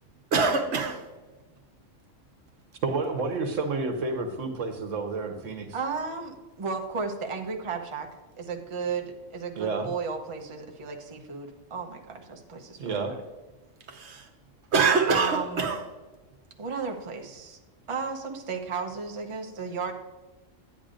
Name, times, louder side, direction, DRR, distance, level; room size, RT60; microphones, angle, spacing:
voice 1, 0.3-1.0 13.9-14.3 14.7-15.8, right 5 dB, 60° right, 1.3 m, -24 dB
voice 2, 2.8-5.7 9.6-9.9 12.8-13.1, right 3 dB, 80° right, 1.3 m, -30 dB
voice 3, 5.7-8.1 8.4-13.2 15.1-15.7 16.6-17.6 17.9-19.9, right 5 dB, 30° right, 0.8 m, -34 dB
9.8 x 9.3 x 2.5 m
omnidirectional pair, 1.3 m